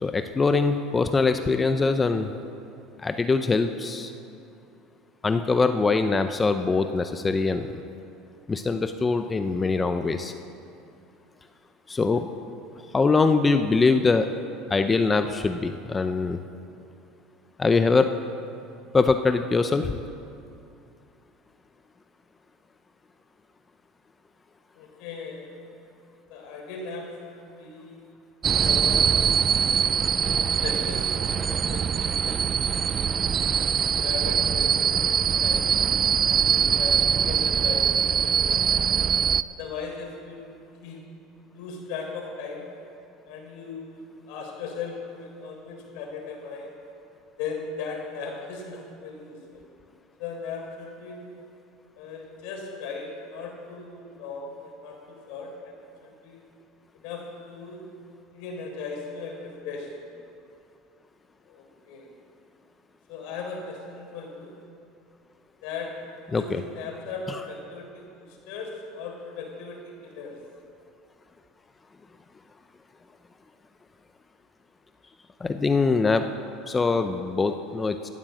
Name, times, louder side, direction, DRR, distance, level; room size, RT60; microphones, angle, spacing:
voice 1, 0.0-2.3 3.0-4.1 5.2-7.8 8.5-10.3 11.9-12.3 12.9-14.3 14.7-16.4 17.6-18.1 18.9-19.9 66.3-66.6 75.4-76.3 76.7-78.1, left 4 dB, 20° left, 8 dB, 0.6 m, -23 dB
voice 2, 24.7-25.6 26.1-28.1 28.6-29.2 29.6-33.3 33.9-35.7 36.3-38.9 39.5-40.5 40.8-41.0 41.5-42.7 43.3-46.7 47.4-49.6 50.2-51.3 51.9-55.7 56.0-56.5 56.9-57.8 58.3-60.2 61.5-62.1 63.1-64.5 65.6-70.4, left 4 dB, 70° left, 1 dB, 3.8 m, -38 dB
sound 1, 28.4-39.4, right 8 dB, 30° right, 0.3 m, -23 dB
15.5 x 9.1 x 7.6 m, 2.6 s
supercardioid pair, 120°, 0 cm